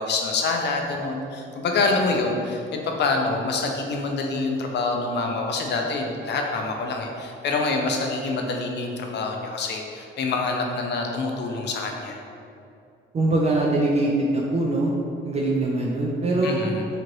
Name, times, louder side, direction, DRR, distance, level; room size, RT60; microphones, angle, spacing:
voice 1, 0.0-12.2 16.4-16.9, left 3 dB, 60° left, 2 dB, 0.5 m, -26 dB
voice 2, 13.1-14.9 15.2-16.6, right 2 dB, 35° right, -3 dB, 0.4 m, -22 dB
2.8 x 2.5 x 3.0 m, 2.6 s
cardioid pair, 90°, 20 cm